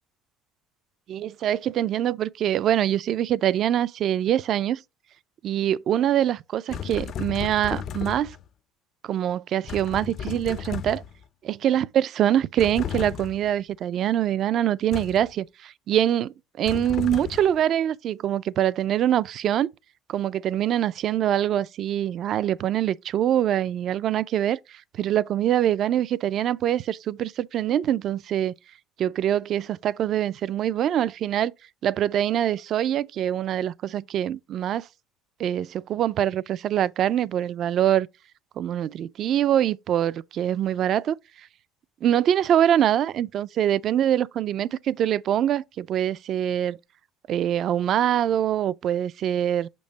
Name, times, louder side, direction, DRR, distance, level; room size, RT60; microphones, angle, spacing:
voice 1, 1.1-4.8 5.4-8.4 9.0-11.0 11.4-19.7 20.1-28.5 29.0-31.5 31.8-34.9 35.4-38.1 38.6-41.2 42.0-46.8 47.3-49.7, right 11 dB, 45° right, 0.3 m, -24 dB
sound 1, 6.7-8.5 9.7-11.3 12.6-13.5 14.9-15.3 16.7-17.6, left 8 dB, 45° left, 0.4 m, -34 dB
6.3 x 5.3 x 2.8 m
cardioid pair, 125°, 0 cm